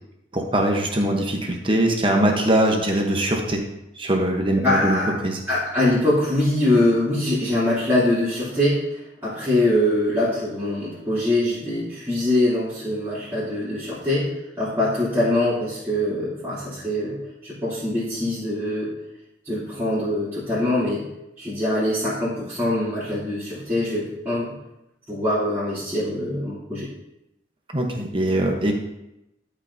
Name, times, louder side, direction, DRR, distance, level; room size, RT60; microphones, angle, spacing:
voice 1, 0.3-3.6 4.0-5.4 27.7-28.7, right 1 dB, 30° right, 2 dB, 1.1 m, -22 dB
voice 2, 4.6-5.2 5.5-8.8 9.2-14.3 14.6-17.2 17.4-18.9 19.4-21.0 21.4-24.5 25.1-26.9, left 1 dB, 15° right, -14 dB, 3.1 m, -23 dB
12.5 x 5.4 x 2.8 m, 0.89 s
head